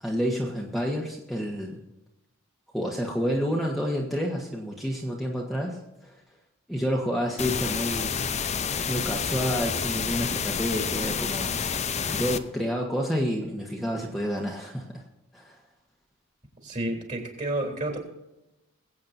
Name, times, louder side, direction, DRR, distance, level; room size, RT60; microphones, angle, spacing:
voice 1, 0.0-1.8 2.7-5.8 6.0-6.2 6.7-8.3 8.9-11.6 12.0-15.0 15.3-15.6, equal, ahead, -2 dB, 1.3 m, -29 dB
sound 1, 7.4-12.4, left 6 dB, 30° left, 0.6 m, -29 dB
voice 2, 16.6-18.0, right 1 dB, 35° right, 2 dB, 3.3 m, -30 dB
22.0 x 8.7 x 2.7 m, 0.97 s
head